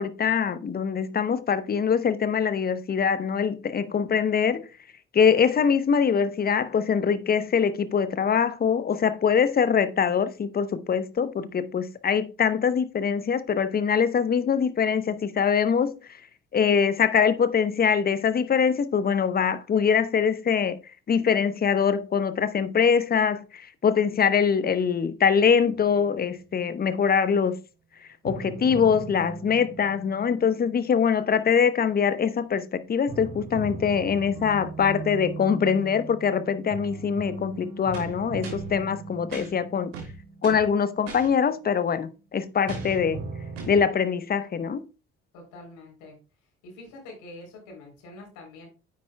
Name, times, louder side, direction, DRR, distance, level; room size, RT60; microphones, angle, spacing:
voice 1, 0.0-4.7 5.1-16.2 16.5-20.8 21.1-27.6 28.0-39.9 40.4-43.2 43.7-44.8, left 7 dB, 30° left, 0.8 m, -23 dB
sound 1, 25.7-26.9 28.2-32.3 33.1-41.9 42.7-43.8, right 4 dB, 50° right, 3.4 m, -39 dB
sound 2, 37.9-38.7 39.3-39.5 39.9-40.7 41.1-41.3 42.7-43.0 43.6-43.8, right 5 dB, 70° right, 2.9 m, -39 dB
voice 2, 45.3-46.2 46.6-48.7, left 2 dB, 60° left, 3.6 m, -45 dB
9.3 x 8.3 x 2.2 m
figure-of-eight pair, 50°, 33 cm